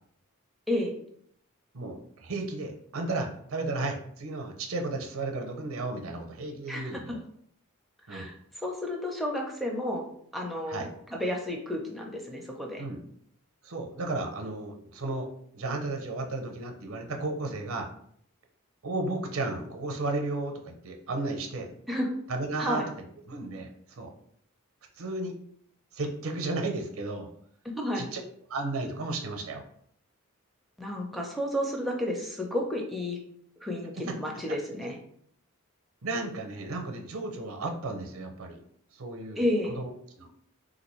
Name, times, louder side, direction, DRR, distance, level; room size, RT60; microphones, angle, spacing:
voice 1, 1.7-7.2 8.1-8.3 10.7-10.9 12.8-13.0 13.6-15.3 15.5-17.9 18.8-21.7 22.3-22.8 23.3-24.1 25.0-25.3 25.9-27.3 28.0-28.2 28.5-29.6 36.0-38.6 39.0-39.4 39.7-39.9 40.2-40.3, right 2 dB, 70° right, 3 dB, 0.6 m, -33 dB
voice 2, 6.7-7.2 8.1-10.1 10.3-12.8 21.9-22.1 22.6-22.9 27.7-28.0 30.8-33.2 33.6-35.0 39.4-39.8, left 1 dB, ahead, -1 dB, 0.5 m, -31 dB
3.6 x 2.6 x 3.0 m, 0.66 s
head